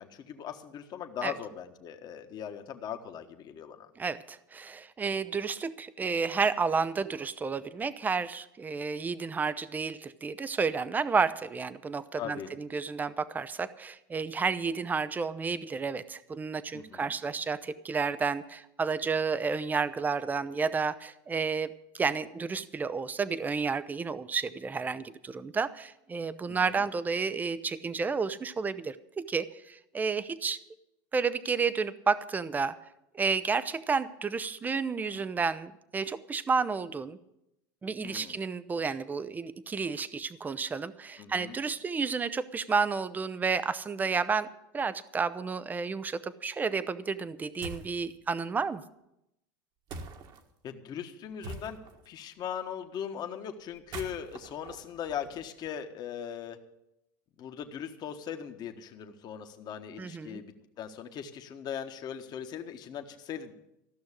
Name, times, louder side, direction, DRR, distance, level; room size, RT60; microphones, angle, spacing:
voice 1, 0.0-3.9 12.2-12.5 16.7-17.1 26.5-26.8 38.0-38.4 41.2-41.6 50.6-51.8 52.0-56.6 57.4-63.5, left 8 dB, 40° left, 6 dB, 1.4 m, -39 dB
voice 2, 4.0-30.6 31.1-32.8 33.1-37.2 37.8-48.8 60.0-60.4, right 5 dB, 15° right, 15 dB, 0.6 m, -31 dB
sound 1, 47.6-48.0 49.9-50.4 51.4-52.1 53.7-55.7, right 3 dB, 45° right, 1.6 m, -43 dB
14.5 x 6.3 x 9.8 m, 0.84 s
supercardioid pair, 120°, 11 cm